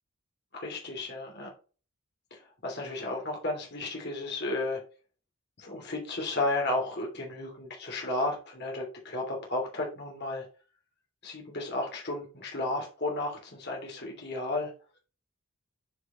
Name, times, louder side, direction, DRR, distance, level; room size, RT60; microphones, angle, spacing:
voice 1, 0.5-1.5 2.3-4.8 5.6-10.5 11.2-14.7, left 2 dB, 50° left, 0 dB, 2.7 m, -33 dB
9.5 x 4.9 x 3.0 m, 0.36 s
head